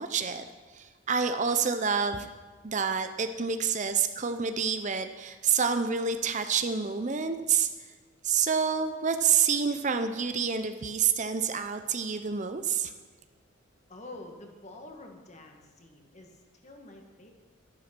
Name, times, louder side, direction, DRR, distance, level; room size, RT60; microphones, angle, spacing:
voice 1, 0.0-2.3 2.6-7.7 8.2-12.9, right 6 dB, 35° right, 9 dB, 0.6 m, -28 dB
voice 2, 13.9-17.3, left 2 dB, 35° left, 3 dB, 1.8 m, -47 dB
12.5 x 11.5 x 6.0 m, 1.4 s
head